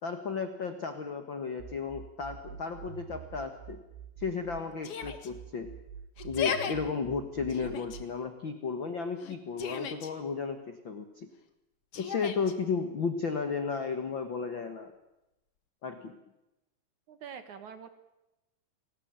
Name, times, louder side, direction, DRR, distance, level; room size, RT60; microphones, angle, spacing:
voice 1, 0.0-3.8 4.2-5.7 6.2-11.3 11.9-14.9 15.8-16.2, left 5 dB, 75° left, 8 dB, 1.1 m, -34 dB
sound 1, 1.6-4.6 5.0-8.0, right 8 dB, 85° right, 3.4 m, -47 dB
Yell, 4.8-5.3 6.2-6.7 7.5-8.0 9.2-10.1 11.9-12.5, left 7 dB, 50° left, 1.9 m, -35 dB
voice 2, 17.1-17.9, right 7 dB, 60° right, 10 dB, 2.3 m, -45 dB
29.0 x 19.0 x 9.0 m, 0.97 s
omnidirectional pair, 4.8 m